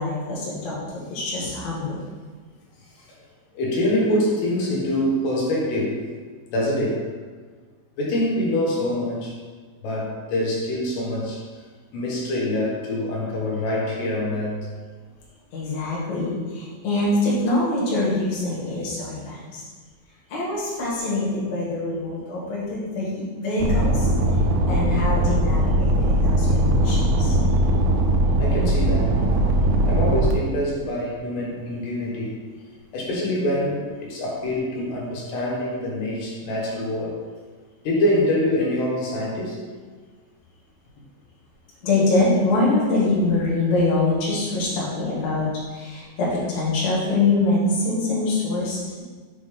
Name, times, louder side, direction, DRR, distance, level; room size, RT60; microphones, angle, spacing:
voice 1, 0.0-2.0 15.5-19.6 20.3-24.1 24.7-27.4 41.8-49.0, left 2 dB, 50° left, -7 dB, 2.6 m, -24 dB
voice 2, 3.6-6.0 6.5-7.1 8.0-9.3 9.8-11.4 11.9-14.6 28.4-29.2 29.9-32.4 32.9-37.2 37.9-39.6, left 1 dB, 85° left, -4 dB, 3.5 m, -25 dB
sound 1, 23.6-30.3, right 1 dB, 80° right, 2.2 m, -20 dB
7.6 x 3.5 x 5.2 m, 1.5 s
omnidirectional pair, 4.7 m